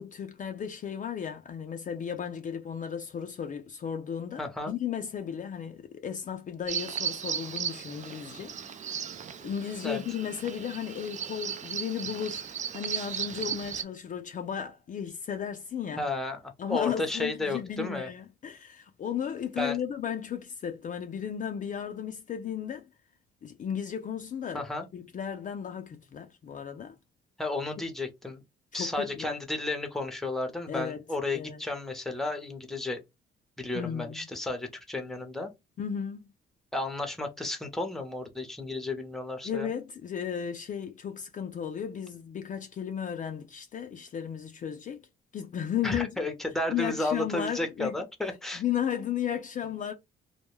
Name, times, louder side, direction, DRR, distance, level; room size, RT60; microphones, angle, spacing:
voice 1, 0.0-8.6 8.8-9.0 9.4-12.4 12.7-16.1 16.6-22.9 23.4-24.7 24.9-27.0 28.7-29.4 30.7-31.0 31.3-31.6 33.7-34.3 35.8-36.3 39.4-45.0 45.3-46.3 46.7-48.0 48.5-49.9, left 8 dB, 40° left, 0.4 m, -34 dB
voice 2, 4.4-4.7 9.8-10.0 16.0-18.1 19.6-19.8 24.5-24.9 27.4-28.4 28.7-33.0 33.6-35.5 36.7-39.7 45.8-48.6, left 2 dB, ahead, 0.7 m, -33 dB
Bird vocalization bird call bird song, 6.7-13.8, right 8 dB, 40° right, 0.4 m, -36 dB
2.2 x 2.2 x 3.0 m
cardioid pair, 90°, 20 cm